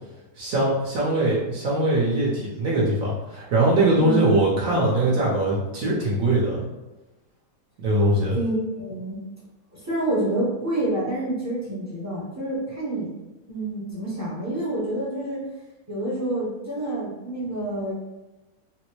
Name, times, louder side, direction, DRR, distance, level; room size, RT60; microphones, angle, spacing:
voice 1, 0.4-6.6 7.8-8.4, right 1 dB, 65° right, -5 dB, 1.1 m, -22 dB
voice 2, 3.9-4.4 8.3-9.2 9.7-13.1 13.5-15.4 15.9-17.9, right 1 dB, 15° right, -8 dB, 0.6 m, -28 dB
3.8 x 2.1 x 3.0 m, 1.1 s
omnidirectional pair, 1.8 m